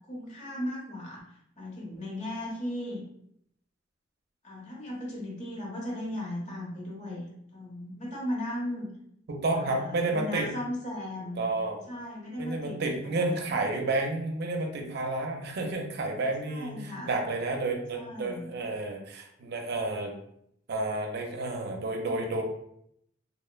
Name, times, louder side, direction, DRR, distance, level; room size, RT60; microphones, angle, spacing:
voice 1, 0.1-1.2 1.6-3.0 4.4-8.9 9.5-11.4 11.9-12.8 13.0-13.5 16.4-17.1 17.9-18.5, left 1 dB, 40° left, -3 dB, 0.9 m, -36 dB
voice 2, 9.3-10.5 11.4-11.8 12.4-20.2 20.7-22.4, right 2 dB, 55° right, 2 dB, 0.5 m, -31 dB
3.0 x 2.1 x 2.2 m, 0.72 s
head